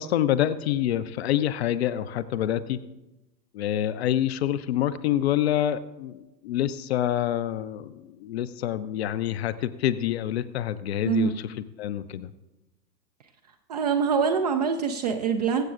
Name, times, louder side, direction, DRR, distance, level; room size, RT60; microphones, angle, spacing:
voice 1, 0.0-2.8 3.5-12.3, left 11 dB, 40° left, 13 dB, 0.6 m, -27 dB
voice 2, 11.1-11.4 13.7-15.6, right 6 dB, 25° right, 7 dB, 0.4 m, -24 dB
22.5 x 7.6 x 2.4 m, 1.0 s
figure-of-eight pair, 100°, 50 cm